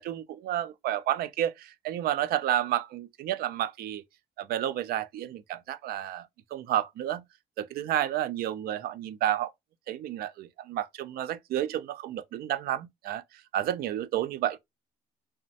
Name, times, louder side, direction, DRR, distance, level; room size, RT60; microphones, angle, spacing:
voice 1, 0.0-4.0 4.4-6.3 6.5-7.2 7.6-9.5 9.9-13.2 13.5-14.6, right 11 dB, 65° right, 0.4 m, -30 dB
3.2 x 2.1 x 2.6 m
cardioid pair, 110°, 17 cm